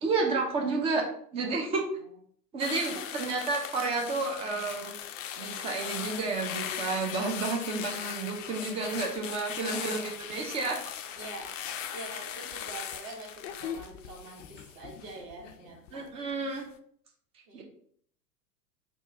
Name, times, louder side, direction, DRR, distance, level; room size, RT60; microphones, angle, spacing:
voice 1, 0.0-1.1 1.3-1.9 2.5-4.9 5.4-10.8 15.9-16.6 17.5-17.6, right 3 dB, 15° right, 1 dB, 0.4 m, -31 dB
sound 1, 2.6-15.9 16.3-16.6, left 9 dB, 55° left, 0.5 m, -39 dB
voice 2, 2.7-3.1 8.8-9.1 9.6-10.0 11.2-11.6 11.9-16.1 17.5-17.6, right 3 dB, 35° right, 0 dB, 1.2 m, -45 dB
3.5 x 2.3 x 3.9 m, 0.62 s
figure-of-eight pair, 95°, 48 cm